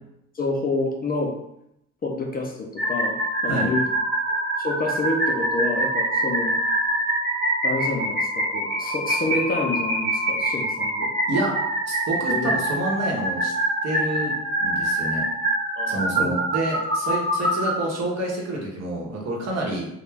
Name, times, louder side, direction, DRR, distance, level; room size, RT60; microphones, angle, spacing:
voice 1, 0.3-1.4 2.0-3.8 4.6-6.5 7.6-11.1 12.3-12.5 15.8-16.3, left 2 dB, 30° left, 1 dB, 0.4 m, -28 dB
sound 1, 2.8-17.7, right 1 dB, 30° right, 1.0 m, -25 dB
voice 2, 11.9-13.5 13.8-14.3 14.6-15.3 15.9-19.9, right 1 dB, 60° right, -2 dB, 0.9 m, -28 dB
2.3 x 2.1 x 3.2 m, 0.79 s
cardioid pair, 90°, 30 cm